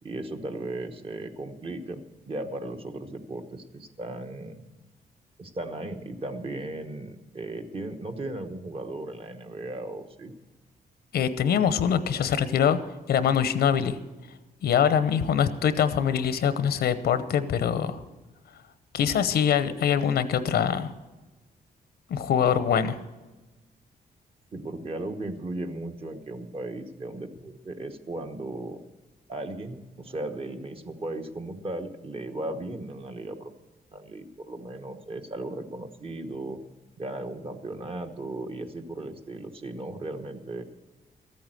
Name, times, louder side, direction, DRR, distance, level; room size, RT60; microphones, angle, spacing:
voice 1, 0.0-4.7 5.4-10.3 24.5-28.8 29.3-33.5 33.9-36.6 37.0-40.6, right 2 dB, 35° right, 6 dB, 1.2 m, -36 dB
voice 2, 11.1-12.8 13.1-14.0 14.6-18.0 18.9-20.9 22.1-23.0, left 8 dB, 85° left, 12 dB, 0.9 m, -23 dB
14.0 x 8.7 x 7.7 m, 1.2 s
cardioid pair, 110°, 16 cm